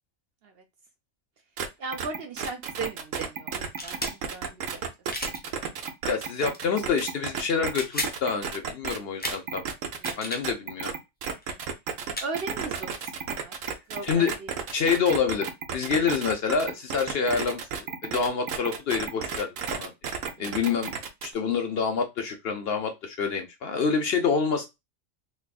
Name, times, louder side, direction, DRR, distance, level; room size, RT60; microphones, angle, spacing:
sound 1, 1.6-1.7 1.9-9.0 9.3-10.1 10.4-21.3, right 6 dB, 75° right, 1.1 m, -32 dB
voice 1, 1.8-4.8 10.0-10.2 12.2-12.9 13.3-13.5 13.9-14.5 20.4-20.6, right 4 dB, 60° right, 0.7 m, -37 dB
sound 2, 3.7-4.2 5.1-5.4 6.4-6.6 7.6-8.2 9.2-9.4 9.9-10.4 11.4-11.5 12.1-12.3 13.7-13.8 13.9-15.2, left 1 dB, 10° left, 0.7 m, -34 dB
voice 2, 6.1-9.6 10.2-10.9 14.0-14.3 14.7-15.5 15.7-19.9 20.4-20.9 21.2-24.7, left 5 dB, 60° left, 0.8 m, -27 dB
3.4 x 3.3 x 2.3 m
omnidirectional pair, 1.4 m